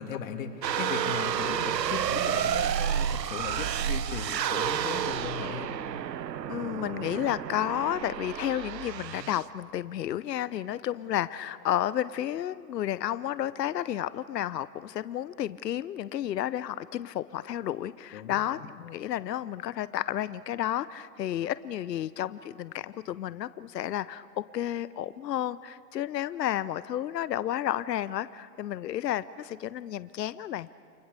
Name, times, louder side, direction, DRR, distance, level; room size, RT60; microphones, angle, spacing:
voice 1, 0.0-5.7 18.1-18.4, left 7 dB, 50° left, 5 dB, 2.6 m, -37 dB
sound 1, 0.6-9.5, right 9 dB, 80° right, 1.0 m, -30 dB
voice 2, 6.5-30.7, left 12 dB, 75° left, 16 dB, 0.8 m, -32 dB
29.5 x 24.5 x 6.8 m, 2.4 s
hypercardioid pair, 140°, 50 cm